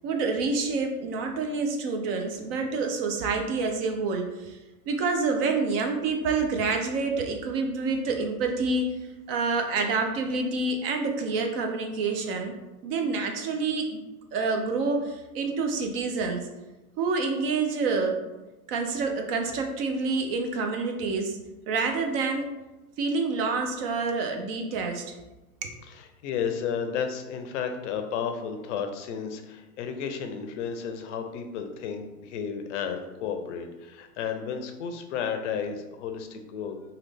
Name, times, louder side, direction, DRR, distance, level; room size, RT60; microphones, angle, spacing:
voice 1, 0.0-4.6 4.9-8.9 9.3-12.5 12.8-14.0 14.3-16.4 17.0-18.2 18.7-21.4 21.7-22.5 23.0-25.0 25.6-25.7, right 4 dB, 40° right, 4 dB, 0.5 m, -27 dB
voice 2, 25.9-37.0, left 7 dB, 55° left, 6 dB, 0.5 m, -33 dB
3.2 x 2.3 x 3.2 m, 1.0 s
hypercardioid pair, 115°, 45 cm